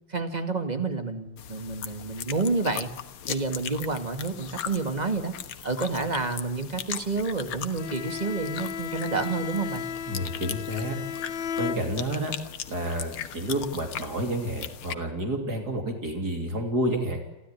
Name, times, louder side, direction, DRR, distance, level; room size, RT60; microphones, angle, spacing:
voice 1, 0.1-2.9 3.3-5.3 5.6-9.9, right 3 dB, 20° right, 7 dB, 2.0 m, -29 dB
sound 1, 1.4-14.9, left 9 dB, 80° left, 2.1 m, -39 dB
Bowed string instrument, 7.8-12.4, left 8 dB, 65° left, 1.6 m, -35 dB
voice 2, 10.1-11.0 11.6-12.3 12.7-17.2, right 1 dB, 45° right, 3 dB, 3.5 m, -29 dB
29.0 x 13.0 x 9.9 m, 1.0 s
omnidirectional pair, 2.4 m